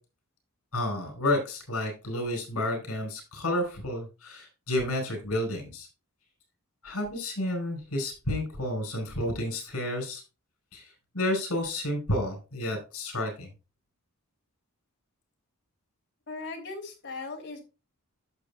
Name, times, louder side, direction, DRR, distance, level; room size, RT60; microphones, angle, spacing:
voice 1, 0.7-5.9 6.8-10.2 10.7-13.5, left 1 dB, 75° left, 3 dB, 4.8 m, -31 dB
voice 2, 16.3-17.6, left 3 dB, 55° left, 1 dB, 3.1 m, -38 dB
11.0 x 7.3 x 2.3 m, 0.29 s
head